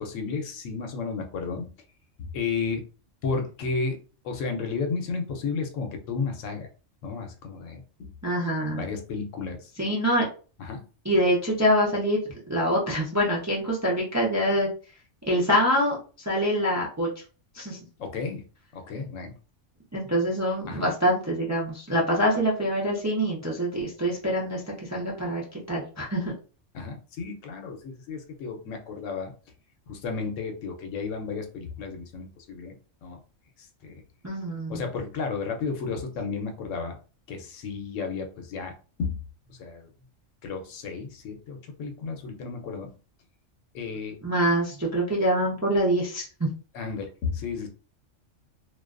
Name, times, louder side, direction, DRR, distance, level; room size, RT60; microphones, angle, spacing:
voice 1, 0.0-1.7 2.2-2.8 3.2-4.0 4.2-6.7 7.0-8.1 8.6-9.7 10.6-10.8 18.0-18.4 18.7-19.3 20.7-20.9 26.7-29.3 29.9-32.7 33.0-33.2 33.6-34.0 34.7-37.0 37.3-38.7 39.0-39.2 39.5-39.9 40.4-42.9 43.7-44.2 46.7-47.7, left 4 dB, 85° left, 3 dB, 1.0 m, -33 dB
voice 2, 8.2-8.8 9.8-10.3 11.0-12.2 12.5-14.7 15.3-17.1 17.5-17.8 19.9-26.3 34.2-34.8 44.2-46.5, equal, 30° right, -4 dB, 0.3 m, -25 dB
2.4 x 2.3 x 2.4 m, 0.37 s
omnidirectional pair, 1.3 m